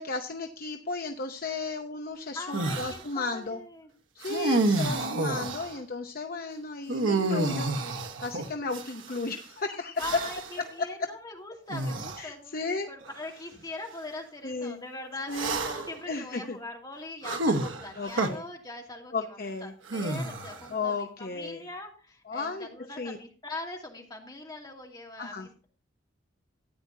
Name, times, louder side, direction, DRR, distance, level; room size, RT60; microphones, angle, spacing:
voice 1, 0.0-3.6 4.2-7.7 8.2-10.2 12.2-12.9 14.4-14.8 15.3-15.6 16.1-16.6 18.0-18.4 19.1-19.7 20.7-21.7 22.3-22.7 23.0-23.2 25.2-25.5, left 3 dB, 50° left, 4 dB, 0.8 m, -34 dB
voice 2, 2.3-3.9 4.3-4.8 10.0-25.6, left 2 dB, 20° left, 0 dB, 2.5 m, -42 dB
sound 1, 2.5-3.0 4.2-5.8 6.9-9.2 10.0-10.6 11.7-12.2 13.1-13.2 15.3-16.0 17.2-18.3 19.9-20.7, right 2 dB, 85° right, 1.3 m, -29 dB
14.0 x 9.7 x 2.7 m, 0.38 s
head